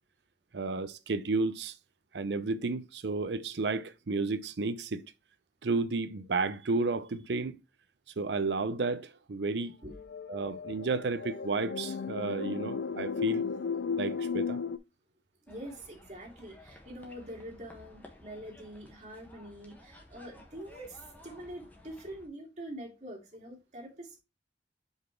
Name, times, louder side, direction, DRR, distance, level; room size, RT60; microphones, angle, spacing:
voice 1, 0.5-1.7 2.1-5.0 5.6-7.6 8.2-9.8 10.3-13.4 14.0-14.6, right 3 dB, 80° right, 0.6 m, -32 dB
sound 1, 9.9-14.8, left 5 dB, 75° left, 0.4 m, -35 dB
sound 2, 15.5-22.3, left 1 dB, 10° left, 1.2 m, -55 dB
voice 2, 15.5-24.2, right 1 dB, 40° right, 2.4 m, -45 dB
5.3 x 4.1 x 4.5 m
head